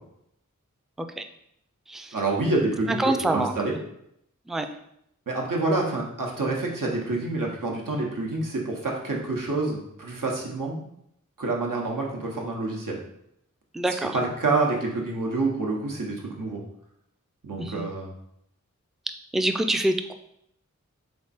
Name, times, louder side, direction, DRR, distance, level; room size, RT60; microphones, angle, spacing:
voice 1, 2.1-3.7 5.3-10.8 11.4-13.0 14.1-16.6 17.4-18.1, right 2 dB, 85° right, -1 dB, 1.0 m, -27 dB
voice 2, 2.9-3.5 4.5-4.7 13.7-14.2 17.6-17.9 19.3-20.1, right 1 dB, ahead, 6 dB, 0.3 m, -25 dB
3.5 x 3.5 x 4.1 m, 0.75 s
wide cardioid pair, 45°, 32 cm